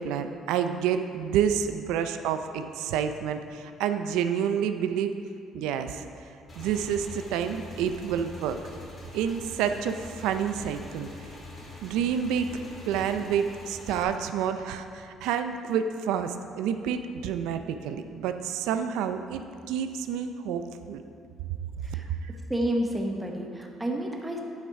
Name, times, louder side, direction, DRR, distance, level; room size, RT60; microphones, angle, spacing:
voice 1, 0.0-5.1 5.5-6.0 6.6-8.6 9.1-11.1 11.8-21.0, right 8 dB, 90° right, 8 dB, 0.4 m, -29 dB
Motorcycle / Engine, 6.5-14.0, left 1 dB, 30° left, 1.9 m, -44 dB
voice 2, 22.5-24.4, right 1 dB, 10° right, 1 dB, 0.8 m, -30 dB
8.8 x 5.8 x 4.7 m, 2.4 s
cardioid pair, 120°, 0 cm